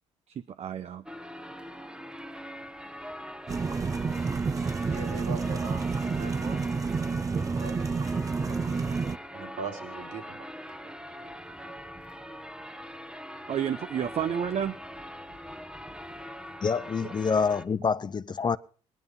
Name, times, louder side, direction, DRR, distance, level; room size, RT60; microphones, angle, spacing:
voice 1, 0.3-1.0 13.5-14.8 17.0-17.1, right 8 dB, 50° right, 0.9 m, -31 dB
sound 1, 1.1-17.7, equal, 5° right, 1.3 m, -42 dB
sound 2, 3.5-9.2, right 4 dB, 25° right, 0.6 m, -29 dB
voice 2, 4.8-7.1 7.4-8.0 8.5-10.4 10.7-10.8, right 4 dB, 75° right, 3.9 m, -41 dB
voice 3, 16.6-18.6, left 5 dB, 35° left, 0.7 m, -27 dB
18.5 x 10.5 x 5.5 m
supercardioid pair, 70°, 13 cm